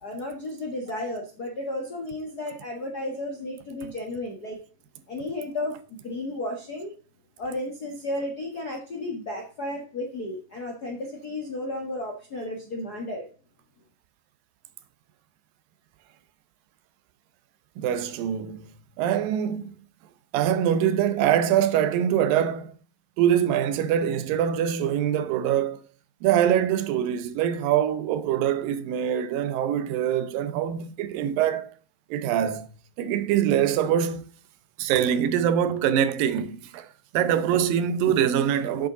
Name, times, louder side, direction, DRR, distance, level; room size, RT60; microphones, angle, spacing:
voice 1, 0.0-4.6 5.1-6.9 7.4-13.2, left 1 dB, 55° left, 1.0 m, -33 dB
voice 2, 17.8-19.7 20.3-22.7 23.2-25.9 26.2-31.7 32.1-32.7 33.0-34.3 34.8-38.9, right 9 dB, 85° right, 2.5 m, -24 dB
8.3 x 6.5 x 3.8 m
omnidirectional pair, 3.9 m